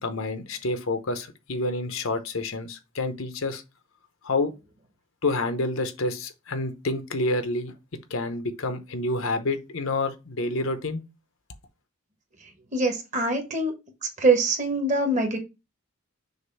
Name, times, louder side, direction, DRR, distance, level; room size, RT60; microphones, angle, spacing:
voice 1, 0.0-3.6 4.2-4.5 5.2-7.7 8.1-11.0, left 2 dB, 70° left, 0.9 m, -28 dB
voice 2, 12.7-13.7 14.2-15.4, right 2 dB, 35° right, 1.3 m, -23 dB
6.5 x 2.7 x 5.4 m
head